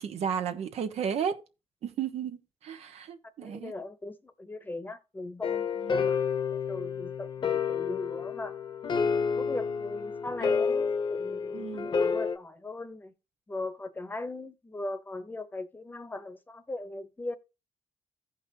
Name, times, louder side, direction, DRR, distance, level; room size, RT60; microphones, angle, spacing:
voice 1, 0.0-1.4 1.8-3.7 5.8-6.1 11.5-11.9, right 7 dB, 85° right, 1.2 m, -33 dB
voice 2, 3.4-6.2 6.5-8.6 9.1-13.1 13.5-17.3, left 2 dB, 20° left, 0.9 m, -39 dB
sound 1, 5.4-12.4, left 6 dB, 50° left, 1.0 m, -29 dB
15.5 x 5.3 x 2.8 m
cardioid pair, 130°, 11 cm